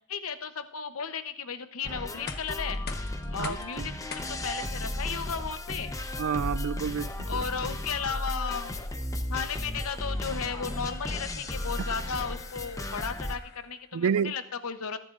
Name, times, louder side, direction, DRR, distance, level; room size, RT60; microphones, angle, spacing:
voice 1, 0.0-2.8 3.3-5.9 7.3-8.8 9.3-15.0, left 6 dB, 80° left, 0.8 m, -35 dB
sound 1, 1.8-13.4, left 1 dB, 15° left, 0.8 m, -34 dB
sound 2, 2.3-14.0, left 5 dB, 50° left, 1.1 m, -49 dB
voice 2, 3.4-3.9 6.2-7.4 13.9-14.3, right 7 dB, 80° right, 0.4 m, -29 dB
22.5 x 11.0 x 2.5 m
head